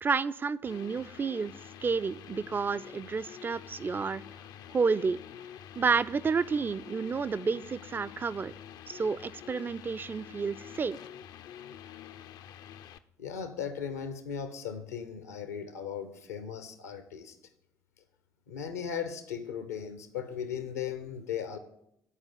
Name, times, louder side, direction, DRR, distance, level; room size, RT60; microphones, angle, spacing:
voice 1, 0.0-1.5 1.8-4.2 4.7-5.2 5.8-8.5 8.9-11.0, right 5 dB, 25° right, 16 dB, 0.4 m, -30 dB
sound 1, 0.7-13.0, left 10 dB, 50° left, 0.4 m, -47 dB
voice 2, 13.2-17.4 18.5-21.6, left 7 dB, 75° left, 10 dB, 0.8 m, -37 dB
10.0 x 4.8 x 7.2 m, 0.77 s
figure-of-eight pair, 50°, 9 cm